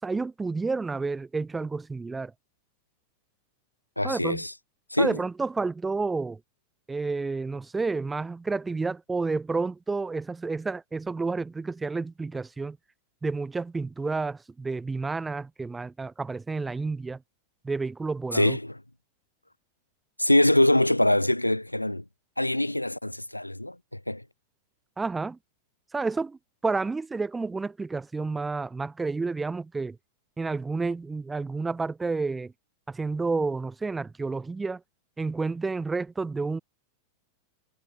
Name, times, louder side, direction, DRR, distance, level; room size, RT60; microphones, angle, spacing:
voice 1, 0.0-2.3 4.0-4.4 5.0-6.4 6.9-12.8 13.2-17.2 17.6-18.6 25.0-25.4 25.9-30.0 30.4-32.5 32.9-34.8 35.2-36.6, right 4 dB, 10° right, 7.0 m, -30 dB
voice 2, 4.0-4.5 4.9-5.2 18.3-18.8 20.2-22.0 22.4-24.2, left 1 dB, 85° left, 2.1 m, -24 dB
figure-of-eight pair, 90°, 0 cm